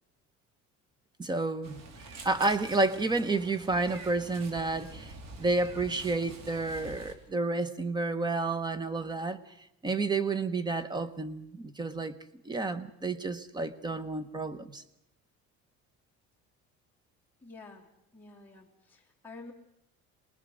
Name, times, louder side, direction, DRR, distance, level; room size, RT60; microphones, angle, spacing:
voice 1, 1.2-1.8 2.2-5.1 5.4-9.4 9.8-12.1 12.4-14.8, right 3 dB, 15° right, 0.9 m, -30 dB
Meow, 1.6-7.1, right 3 dB, 65° right, 3.1 m, -47 dB
voice 2, 17.4-19.5, left 3 dB, 5° left, 2.9 m, -50 dB
23.5 x 19.5 x 6.3 m
cardioid pair, 160°, 30 cm